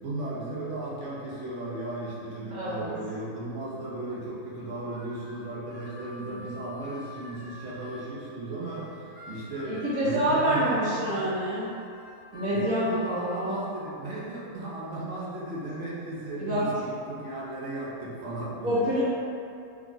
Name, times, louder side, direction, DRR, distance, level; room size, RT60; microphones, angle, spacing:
voice 1, 0.0-11.2 12.5-18.9, right 2 dB, 60° right, -7 dB, 1.0 m, -35 dB
voice 2, 2.5-2.9 9.6-11.6 12.3-13.5 16.4-16.6 18.6-19.0, equal, 80° right, -11 dB, 1.3 m, -27 dB
Harmonica, 4.6-8.1 8.6-13.7, left 1 dB, 35° right, 0.8 m, -47 dB
3.4 x 2.3 x 3.8 m, 2.6 s
omnidirectional pair, 1.5 m